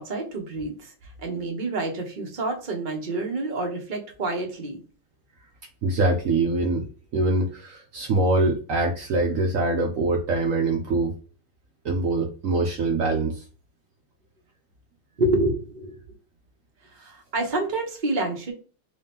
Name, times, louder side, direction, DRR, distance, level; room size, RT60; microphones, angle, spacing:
voice 1, 0.0-4.8 15.2-16.0 16.9-18.5, right 2 dB, 40° right, 1 dB, 0.6 m, -28 dB
voice 2, 5.8-11.1 11.8-13.4, right 2 dB, 90° right, 1 dB, 0.7 m, -24 dB
3.4 x 2.8 x 3.5 m, 0.36 s
omnidirectional pair, 2.3 m